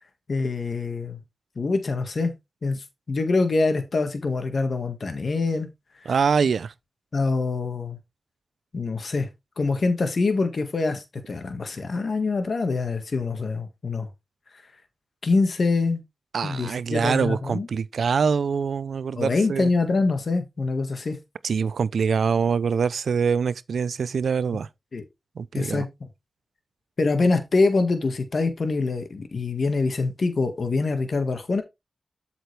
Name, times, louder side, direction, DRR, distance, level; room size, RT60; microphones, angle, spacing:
voice 1, 0.3-1.2 1.6-2.3 2.6-5.7 7.1-8.0 8.7-9.3 9.6-14.1 15.2-16.0 16.4-17.7 19.2-21.2 24.9-25.0 25.5-25.9 27.0-31.6, left 3 dB, 65° left, 1.7 m, -25 dB
voice 2, 6.1-6.7 16.3-19.7 21.4-24.7 25.4-25.8, right 6 dB, 90° right, 0.5 m, -24 dB
8.0 x 6.0 x 3.3 m
cardioid pair, 55°, 0 cm